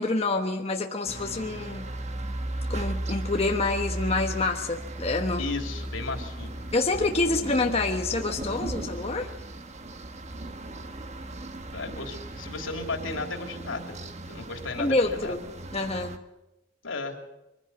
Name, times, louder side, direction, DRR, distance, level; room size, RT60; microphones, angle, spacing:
voice 1, 0.0-1.9 2.7-5.4 6.7-9.3 14.8-15.4 15.7-16.2, left 3 dB, 30° left, 3 dB, 1.2 m, -27 dB
sound 1, 1.1-16.2, right 1 dB, 35° right, 1.2 m, -36 dB
voice 2, 5.4-6.7 11.7-14.0 14.3-15.4 16.8-17.1, left 3 dB, 85° left, 4 dB, 3.3 m, -34 dB
23.0 x 15.5 x 8.5 m, 0.95 s
head